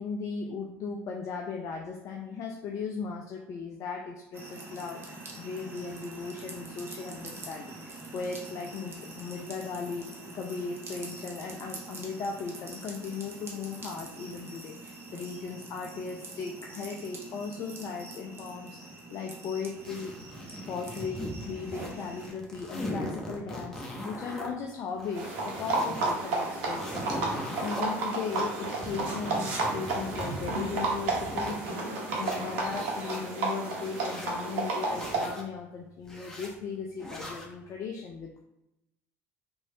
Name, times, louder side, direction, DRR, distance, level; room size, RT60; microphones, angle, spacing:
voice 1, 0.0-10.1 10.3-20.1 20.7-38.4, left 5 dB, 45° left, 2 dB, 0.3 m, -37 dB
sound 1, 4.3-22.3, right 2 dB, 30° right, 0.7 m, -45 dB
sound 2, 19.8-21.9 22.2-24.5 24.9-26.1 26.5-27.8 28.3-31.6 32.0-33.2 33.7-34.3 34.9-35.4 36.0-36.5 37.0-37.5, equal, 5° left, 0.8 m, -40 dB
sound 3, 25.1-35.3, right 3 dB, 65° right, 0.7 m, -32 dB
3.0 x 2.2 x 2.7 m, 0.89 s
hypercardioid pair, 65°, 8 cm